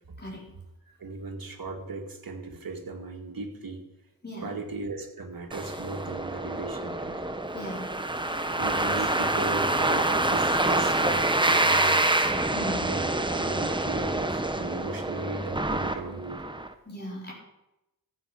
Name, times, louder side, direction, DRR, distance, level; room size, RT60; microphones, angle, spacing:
voice 1, 0.2-0.5 4.2-4.5 7.5-8.1 8.4-8.6 9.0-9.3 12.2-12.9 16.8-17.3, equal, 30° left, -5 dB, 4.6 m, -39 dB
voice 2, 1.0-3.9 4.4-7.2 8.5-12.1 12.8-16.4, right 3 dB, 75° right, 2 dB, 2.1 m, -37 dB
sound 1, 5.5-16.7, right 2 dB, 15° right, 0.9 m, -26 dB
15.0 x 8.3 x 5.2 m, 0.90 s
wide cardioid pair, 90°, 35 cm